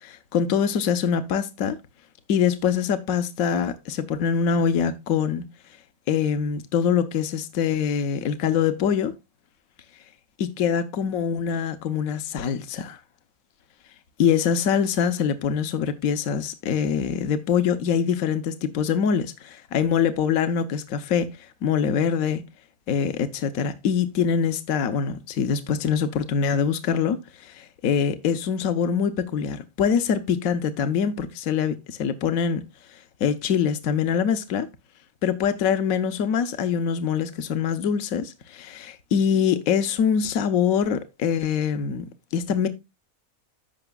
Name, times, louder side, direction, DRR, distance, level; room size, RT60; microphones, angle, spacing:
voice 1, 0.0-1.8 2.3-5.4 6.1-9.1 10.4-13.0 14.2-22.4 22.9-32.6 32.9-34.7 35.2-42.0 42.3-42.7, left 7 dB, 75° left, 1.3 m, -24 dB
14.0 x 5.8 x 2.3 m
omnidirectional pair, 1.5 m